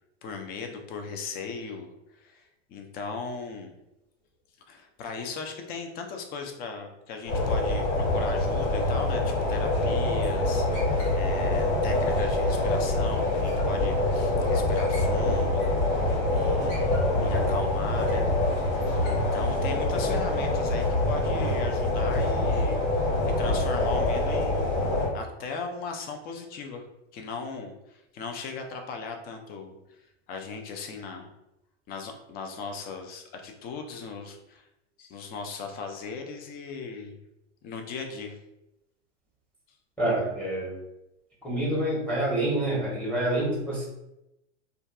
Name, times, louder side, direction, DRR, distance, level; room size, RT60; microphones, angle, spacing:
voice 1, 0.2-3.7 4.7-18.3 18.7-22.9 23.3-24.8 25.1-26.9 27.1-29.7 30.3-31.3 31.9-34.7 35.0-37.2 37.6-38.4, left 4 dB, 25° left, 4 dB, 0.4 m, -38 dB
sound 1, 7.3-25.1, left 2 dB, 65° left, 1.4 m, -25 dB
voice 2, 40.0-40.8 41.4-43.9, right 1 dB, 5° left, -5 dB, 0.8 m, -27 dB
2.6 x 2.3 x 2.2 m, 0.89 s
hypercardioid pair, 105°, 36 cm